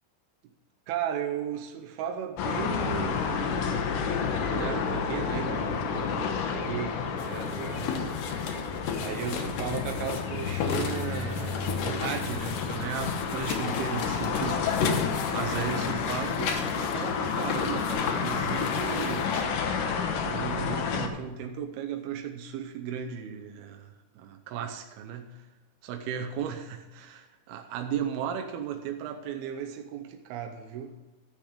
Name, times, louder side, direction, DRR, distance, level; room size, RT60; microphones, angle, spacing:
voice 1, 0.9-3.3 4.5-8.1 9.0-19.3 19.9-25.5 25.8-31.0, right 8 dB, 80° right, 3 dB, 2.3 m, -36 dB
sound 1, 2.4-21.1, left 6 dB, 85° left, 1.8 m, -30 dB
sound 2, 7.2-19.5, left 5 dB, 70° left, 2.1 m, -35 dB
13.0 x 6.9 x 5.0 m, 1.2 s
omnidirectional pair, 5.2 m